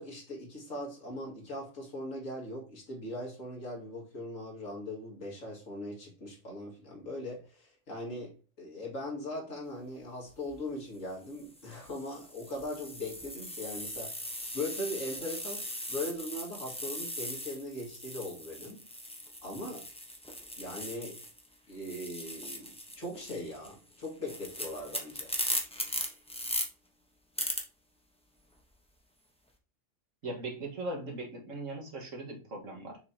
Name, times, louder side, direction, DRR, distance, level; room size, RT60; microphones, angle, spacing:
voice 1, 0.0-8.3 8.6-18.8 19.4-19.9 20.6-21.2 21.7-25.3, left 1 dB, 90° left, 2.5 m, -40 dB
sound 1, 10.3-10.5 11.3-21.5 21.7-26.7 27.4-27.6, equal, 5° left, 0.9 m, -39 dB
voice 2, 30.2-33.0, right 2 dB, 85° right, 2.0 m, -39 dB
6.7 x 5.1 x 2.8 m
omnidirectional pair, 1.3 m